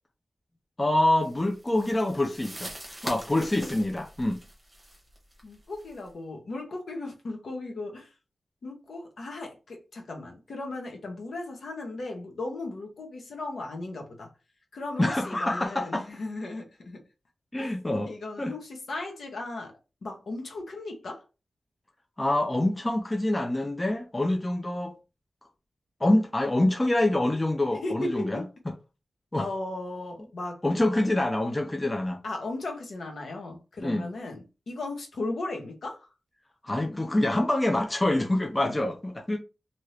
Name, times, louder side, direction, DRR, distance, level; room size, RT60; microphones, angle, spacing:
voice 1, 0.8-2.7 3.0-4.4 15.0-16.1 17.5-18.1 18.4-18.5 22.2-24.9 26.0-28.7 29.3-29.5 30.6-32.2 33.8-34.1 36.6-39.4, left 1 dB, 20° left, 0.4 m, -26 dB
sound 1, 1.2-6.1, right 1 dB, 10° right, 0.9 m, -43 dB
voice 2, 5.4-8.1 8.6-14.3 14.7-17.0 17.6-17.7 18.0-19.7 20.0-21.2 27.8-28.4 29.4-30.6 32.2-36.1, left 2 dB, 70° left, 0.9 m, -36 dB
2.8 x 2.6 x 3.2 m
wide cardioid pair, 150°, 0 cm